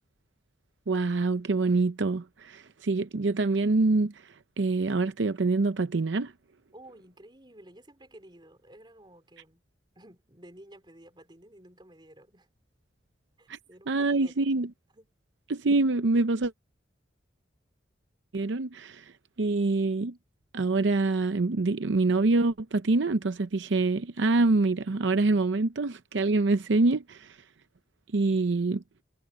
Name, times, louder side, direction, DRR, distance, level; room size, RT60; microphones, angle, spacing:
voice 1, 0.9-6.3 13.5-13.6 13.9-14.7 15.5-16.5 18.3-19.1 19.4-20.2 20.5-27.4 28.1-28.8, right 3 dB, 75° right, 0.6 m, -25 dB
voice 2, 6.7-9.6 10.0-12.5 13.4-14.5 14.9-15.1, right 1 dB, 25° right, 4.1 m, -52 dB
head